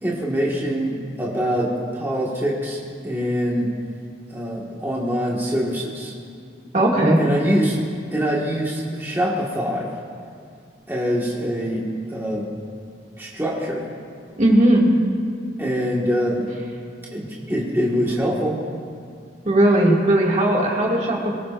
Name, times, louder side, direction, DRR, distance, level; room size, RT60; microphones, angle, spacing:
voice 1, 0.0-3.7 4.3-6.1 7.2-7.8 8.1-9.9 10.9-12.5 13.2-13.9 15.6-16.5 17.1-18.6, equal, 15° right, -4 dB, 1.7 m, -24 dB
voice 2, 6.7-7.2 14.4-14.9 19.4-21.3, right 1 dB, 40° right, -2 dB, 2.3 m, -17 dB
23.0 x 19.5 x 2.6 m, 2.3 s
head